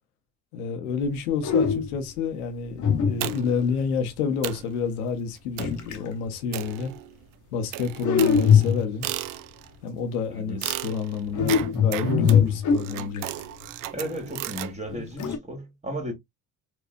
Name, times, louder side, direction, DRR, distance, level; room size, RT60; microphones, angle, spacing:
voice 1, 0.5-6.9 7.5-9.1 9.8-13.3, left 6 dB, 80° left, 0.8 m, -29 dB
sound 1, 1.0-1.1 1.4-2.1 2.8-3.7 5.6-6.1 8.0-9.1 11.3-13.4 14.9-15.4, left 7 dB, 45° left, 0.9 m, -22 dB
sound 2, 3.2-3.7 4.1-4.2 4.4-4.7 5.6-5.9 6.5-7.3 7.7-9.7 10.6-14.7, right 14 dB, 50° right, 0.5 m, -35 dB
voice 2, 10.3-10.7 13.9-16.1, equal, 15° right, 1.6 m, -34 dB
4.3 x 2.1 x 2.5 m
hypercardioid pair, 55°, 44 cm